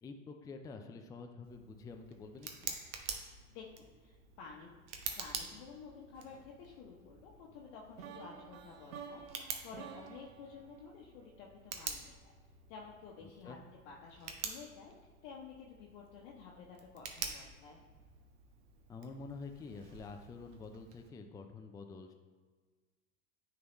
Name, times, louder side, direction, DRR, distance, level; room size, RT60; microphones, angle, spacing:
voice 1, 0.0-2.8 13.2-13.6 18.9-22.1, left 4 dB, 10° left, 5 dB, 0.4 m, -48 dB
Tick, 1.4-21.1, right 6 dB, 60° right, 1.0 m, -48 dB
voice 2, 3.5-4.7 5.1-12.3 12.7-13.6 13.8-14.9 15.2-17.8, left 5 dB, 55° left, -3 dB, 1.0 m, -52 dB
sound 1, 8.0-11.9, right 7 dB, 85° right, 0.6 m, -51 dB
9.3 x 4.0 x 3.0 m, 1.4 s
hypercardioid pair, 85°, 39 cm